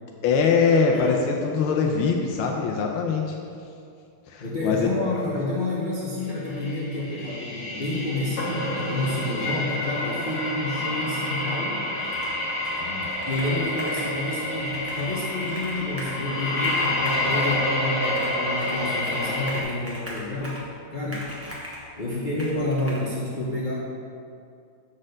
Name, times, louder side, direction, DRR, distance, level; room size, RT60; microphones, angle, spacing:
voice 1, 0.2-3.4 4.3-4.9 12.8-13.1, left 5 dB, 90° left, 1 dB, 1.5 m, -23 dB
voice 2, 4.4-11.9 13.3-20.6 20.9-21.3 22.0-23.7, left 2 dB, 50° left, -6 dB, 0.5 m, -29 dB
sound 1, 6.5-19.6, left 1 dB, 70° left, 1.9 m, -28 dB
Computer keyboard, 12.0-12.4 12.6-14.1 14.6-16.2 16.5-17.6 18.1-18.8 19.1-20.7 21.1-21.9 22.4-23.0, equal, 10° right, 0.8 m, -40 dB
7.4 x 4.2 x 6.5 m, 2.4 s
omnidirectional pair, 2.3 m